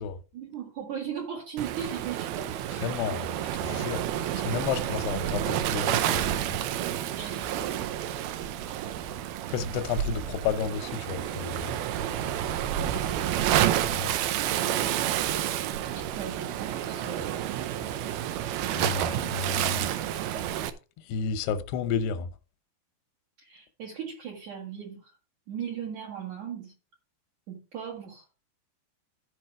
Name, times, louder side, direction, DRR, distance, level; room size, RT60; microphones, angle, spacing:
voice 1, 0.3-2.5 7.2-7.7 12.8-13.5 16.0-17.7 23.4-25.1 25.5-26.7 27.5-28.2, right 8 dB, 55° right, 2.5 m, -38 dB
Waves surf, 1.6-20.7, right 11 dB, 80° right, 2.5 m, -29 dB
voice 2, 2.8-3.4 3.6-4.0 4.5-6.6 9.5-11.7 13.9-14.1 18.7-19.9 21.1-22.3, left 6 dB, 80° left, 2.9 m, -31 dB
13.5 x 4.9 x 4.8 m
omnidirectional pair, 4.8 m